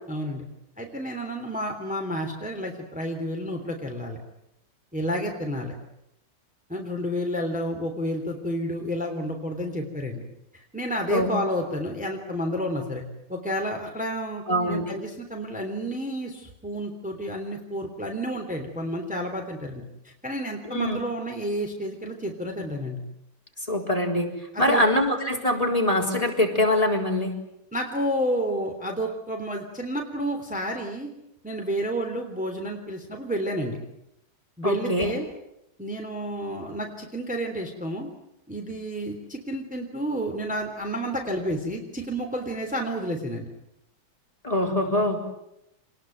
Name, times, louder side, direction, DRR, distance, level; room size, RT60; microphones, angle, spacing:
voice 1, 0.1-0.4 0.8-4.2 4.9-5.7 6.7-10.2 10.5-13.0 13.3-14.4 14.7-23.0 24.5-24.8 27.7-31.1 31.4-33.8 34.6-35.3 35.8-38.1 38.5-43.5, equal, 5° right, 2 dB, 3.2 m, -30 dB
voice 2, 14.5-14.8 20.6-21.0 23.7-24.3 24.6-27.3 34.6-35.1 44.4-45.2, left 1 dB, 15° left, 4 dB, 4.3 m, -23 dB
28.0 x 20.5 x 9.2 m, 0.84 s
omnidirectional pair, 2.3 m